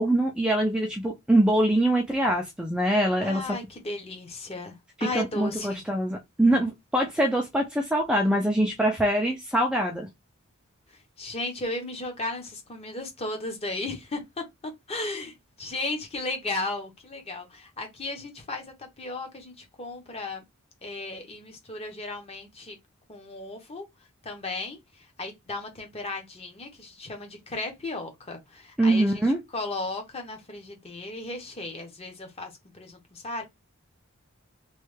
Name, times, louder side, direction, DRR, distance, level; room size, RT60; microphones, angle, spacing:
voice 1, 0.0-3.4 5.0-10.1 28.8-29.4, right 1 dB, 5° right, 0.4 m, -24 dB
voice 2, 3.2-5.8 11.2-20.4 20.8-22.8 23.1-23.8 24.2-29.2 29.5-33.4, left 2 dB, 30° left, 0.8 m, -35 dB
3.1 x 2.2 x 3.2 m
head